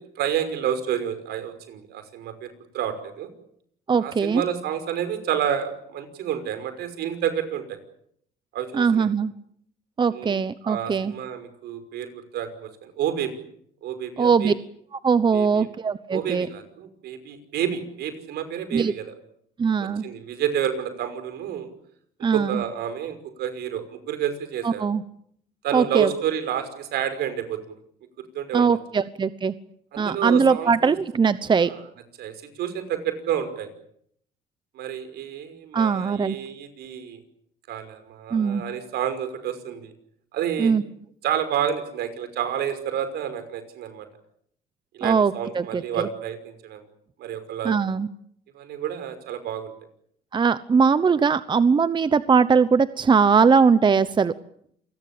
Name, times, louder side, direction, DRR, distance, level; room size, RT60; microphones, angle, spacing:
voice 1, 0.0-3.3 4.0-7.8 8.5-9.1 10.1-13.3 13.8-14.5 15.3-15.7 16.1-19.1 20.0-21.7 22.3-24.9 25.6-27.8 28.3-29.0 29.9-30.9 31.6-31.9 32.2-33.7 34.7-37.2 37.7-39.9 40.3-40.7 41.2-44.1 44.9-46.8 47.2-47.8 48.5-49.7, right 9 dB, 75° right, 10 dB, 5.6 m, -29 dB
voice 2, 3.9-4.4 8.7-9.3 10.0-11.1 14.2-14.5 15.0-16.5 18.7-18.9 19.6-20.0 22.2-22.6 24.6-25.0 25.7-26.1 28.5-29.5 30.0-31.7 35.7-36.3 38.3-38.6 40.6-40.8 45.0-45.8 47.6-48.1 50.3-54.3, right 5 dB, 25° right, 14 dB, 1.0 m, -20 dB
28.0 x 20.5 x 8.7 m, 0.69 s
cardioid pair, 110°, 17 cm